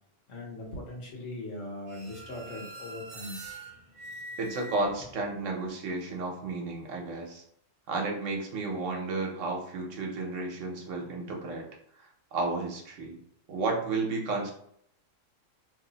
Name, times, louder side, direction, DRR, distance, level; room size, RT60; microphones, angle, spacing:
voice 1, 0.3-3.4, left 1 dB, 75° left, -2 dB, 1.3 m, -40 dB
sound 1, 1.9-5.4, right 1 dB, 50° right, 0.8 m, -44 dB
voice 2, 4.4-7.4 7.9-11.7 12.0-13.2 13.5-14.5, right 3 dB, 75° right, 1 dB, 1.1 m, -32 dB
3.0 x 2.0 x 3.9 m, 0.68 s
omnidirectional pair, 1.3 m